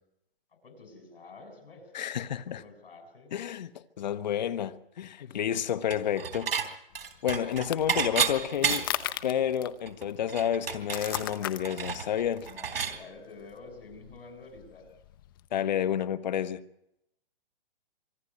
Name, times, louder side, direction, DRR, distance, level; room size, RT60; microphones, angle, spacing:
voice 1, 0.6-1.9 2.5-3.4 5.2-5.6 7.1-7.2 12.4-14.9, left 3 dB, 80° left, 7.1 m, -49 dB
voice 2, 1.9-2.6 3.3-6.8 7.2-8.9 9.2-12.5 15.5-16.6, left 9 dB, 50° left, 1.1 m, -30 dB
Dishes pots and pans / Chink clink, 5.9-6.7 6.9-9.1 9.5-9.6 9.9-13.0, right 7 dB, 80° right, 3.4 m, -31 dB
sound 1, 6.9-15.5, left 13 dB, 25° left, 0.8 m, -40 dB
25.5 x 11.5 x 9.4 m
hypercardioid pair, 170°, 29 cm